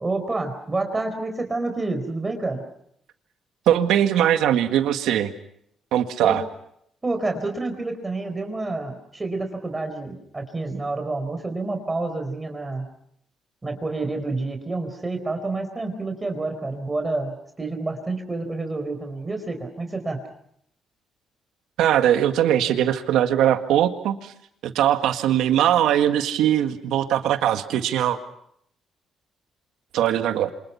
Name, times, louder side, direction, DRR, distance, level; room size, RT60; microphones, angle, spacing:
voice 1, 0.0-2.6 6.2-6.4 7.0-12.9 13.6-20.2, right 2 dB, 20° right, 5 dB, 4.6 m, -28 dB
voice 2, 3.7-5.3 5.9-6.4 21.8-24.3 24.6-28.2 29.9-30.5, right 11 dB, 85° right, 7 dB, 1.8 m, -21 dB
28.5 x 26.0 x 5.7 m, 0.71 s
cardioid pair, 90°, 0 cm